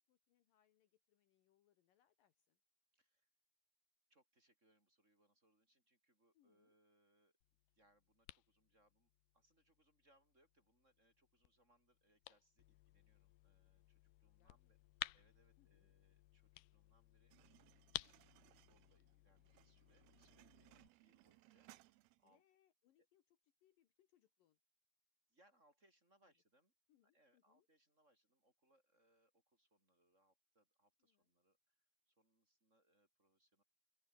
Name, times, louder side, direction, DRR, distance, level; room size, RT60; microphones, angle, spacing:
voice 1, 0.0-2.6 6.3-6.7 14.4-14.6 15.6-15.9 22.2-23.2 23.6-24.6 26.2-26.3 26.9-27.7 31.0-31.3, left 12 dB, 65° left, 2.7 m, -79 dB
voice 2, 2.9-3.3 4.1-7.3 7.7-14.8 15.1-17.3 18.5-22.4 23.0-23.1 25.3-26.7 27.0-33.6, right 1 dB, 15° right, 5.6 m, -78 dB
sound 1, 7.4-20.9, left 18 dB, 85° left, 2.8 m, -56 dB
sound 2, 17.3-22.4, right 18 dB, 80° right, 2.8 m, -68 dB
open air
omnidirectional pair, 4.6 m